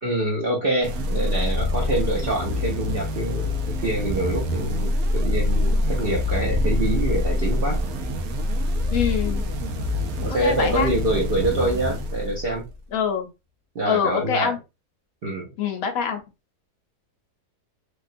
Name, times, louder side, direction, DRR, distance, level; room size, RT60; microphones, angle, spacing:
voice 1, 0.0-7.8 10.2-12.6 13.7-14.5 15.2-15.5, right 1 dB, 55° right, -2 dB, 0.7 m, -25 dB
sound 1, 0.8-12.8, left 2 dB, 70° right, 1.0 m, -25 dB
voice 2, 8.9-9.5 10.4-10.9 12.9-13.3 13.8-14.6 15.6-16.2, left 7 dB, 70° left, 5 dB, 1.0 m, -24 dB
3.4 x 2.2 x 2.5 m, 0.25 s
omnidirectional pair, 1.7 m